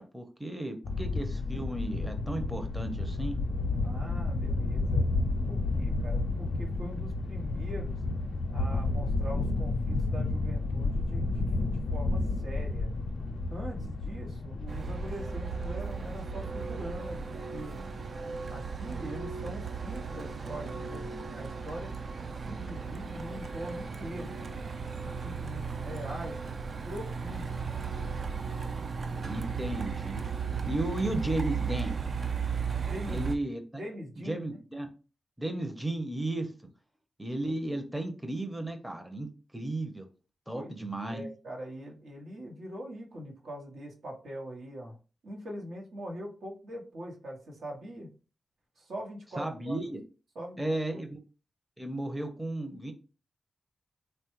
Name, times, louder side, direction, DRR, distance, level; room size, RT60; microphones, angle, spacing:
voice 1, 0.0-3.4 29.3-30.2 30.6-31.9 33.1-33.8 34.3-34.9 35.4-36.5 37.2-39.3 39.5-40.1 40.5-41.3 49.4-50.0 50.6-51.2 51.8-52.9, right 1 dB, 10° right, 5 dB, 0.6 m, -34 dB
sound 1, 0.8-17.2, left 2 dB, 85° left, 0.4 m, -31 dB
voice 2, 3.8-5.1 5.5-8.0 8.5-12.9 13.5-17.9 18.5-21.9 22.4-24.4 25.0-26.4 26.8-27.5 32.9-33.2 33.8-34.6 40.5-40.7 41.1-45.0 45.2-48.1 48.8-49.8 50.3-51.1, equal, 80° right, -1 dB, 0.8 m, -42 dB
Truck, 14.7-33.4, right 5 dB, 65° right, 0.3 m, -36 dB
3.2 x 2.2 x 3.0 m, 0.35 s
cardioid pair, 50°, 0 cm